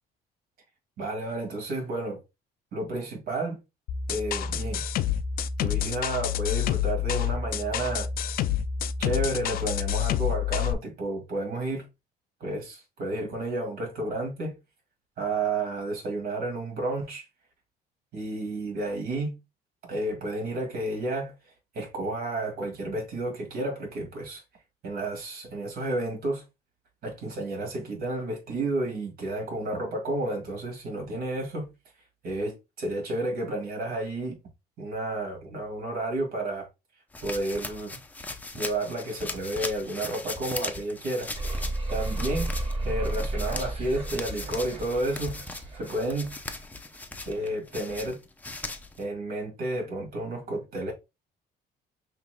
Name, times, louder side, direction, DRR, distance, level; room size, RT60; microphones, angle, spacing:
voice 1, 1.0-2.2 2.7-3.6 4.1-4.8 5.6-8.1 9.0-11.9 12.4-14.6 15.2-17.3 18.1-19.4 19.9-21.3 21.7-24.4 24.8-26.4 27.0-31.7 32.2-34.4 34.8-36.7 37.2-38.0 38.5-42.5 42.8-45.4 45.8-46.3 47.3-48.2 49.0-50.9, right 2 dB, 65° right, 2.1 m, -31 dB
sound 1, 3.9-10.7, left 10 dB, 60° left, 0.4 m, -28 dB
sound 2, 37.1-49.0, left 2 dB, 10° left, 0.6 m, -38 dB
sound 3, 41.3-46.5, right 2 dB, 35° right, 1.6 m, -33 dB
5.7 x 3.0 x 2.3 m
cardioid pair, 110°, 17 cm